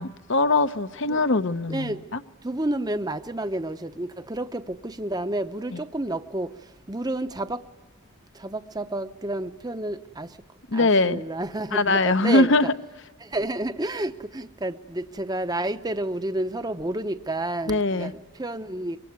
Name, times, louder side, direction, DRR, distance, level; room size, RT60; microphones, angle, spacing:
voice 1, 0.0-2.2 10.7-11.2 11.7-12.7 17.7-18.1, left 2 dB, 55° left, 0.9 m, -22 dB
voice 2, 1.7-2.0 2.4-6.5 6.9-7.6 8.4-10.3 10.7-12.5 13.2-19.0, right 1 dB, 15° right, 0.8 m, -30 dB
25.0 x 23.5 x 9.4 m
head